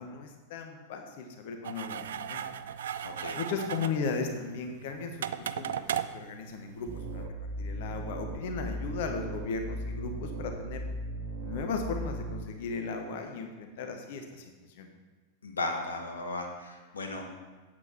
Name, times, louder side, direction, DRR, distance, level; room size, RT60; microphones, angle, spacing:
voice 1, 0.0-2.4 3.3-5.9 6.1-7.2 7.6-10.8 11.4-14.5 14.8-14.9, left 4 dB, 55° left, 5 dB, 1.0 m, -36 dB
sound 1, 1.6-7.2, right 9 dB, 60° right, 0.4 m, -37 dB
voice 2, 3.0-3.4 15.4-17.2, left 2 dB, 70° left, 3 dB, 1.4 m, -35 dB
sound 2, 6.9-12.4, right 1 dB, 40° right, 1.0 m, -37 dB
8.5 x 8.1 x 4.4 m, 1.3 s
figure-of-eight pair, 90°, 0 cm